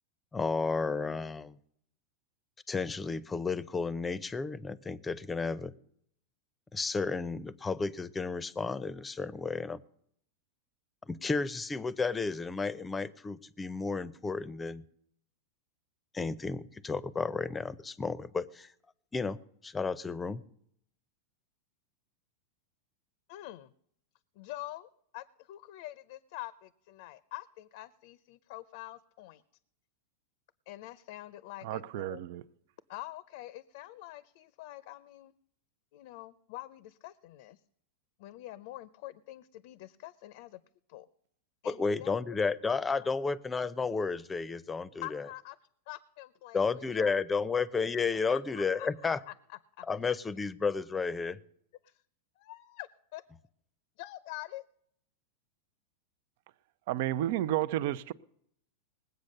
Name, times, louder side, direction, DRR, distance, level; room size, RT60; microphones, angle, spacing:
voice 1, 0.3-1.6 2.7-5.7 6.7-9.8 11.1-14.8 16.1-18.7 19.1-19.4 19.6-20.4 41.6-45.2 46.5-49.2 49.9-51.4, left 4 dB, 15° left, 0.6 m, -32 dB
voice 2, 23.3-23.7 24.3-29.4 30.7-32.2 32.9-35.3 35.9-37.6 38.2-40.6 40.9-41.1 41.6-42.4 42.6-43.1 45.0-45.6 45.9-47.4 48.1-50.1 51.8-52.0 52.4-53.2 54.0-54.6, left 16 dB, 60° left, 0.6 m, -46 dB
voice 3, 31.6-32.4 56.9-58.1, right 13 dB, 65° right, 0.6 m, -31 dB
20.0 x 8.0 x 6.6 m
hypercardioid pair, 120°, 0 cm